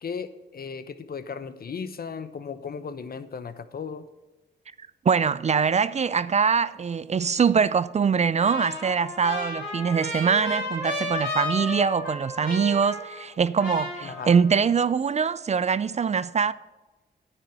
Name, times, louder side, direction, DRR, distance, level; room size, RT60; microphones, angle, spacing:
voice 1, 0.0-4.1 14.0-14.3, left 6 dB, 55° left, 0.9 m, -36 dB
voice 2, 5.1-16.5, right 6 dB, 35° right, 0.4 m, -23 dB
Trumpet, 8.4-13.3 13.6-14.6, left 2 dB, 85° left, 3.5 m, -33 dB
9.8 x 8.8 x 4.7 m
cardioid pair, 60°, 19 cm